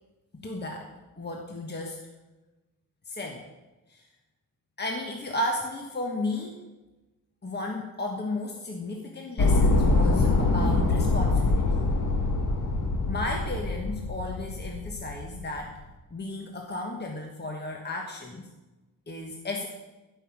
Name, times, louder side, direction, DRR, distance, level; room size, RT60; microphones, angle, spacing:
voice 1, 0.4-0.9 1.2-2.0 3.1-3.4 3.9-4.0 4.8-6.6 7.4-11.8 13.0-15.7 16.1-18.4 19.1-19.7, left 2 dB, 30° left, 1 dB, 1.3 m, -34 dB
sound 1, 9.4-15.7, left 3 dB, 60° left, 1.5 m, -24 dB
14.5 x 5.8 x 7.3 m, 1.1 s
wide cardioid pair, 115°, 35 cm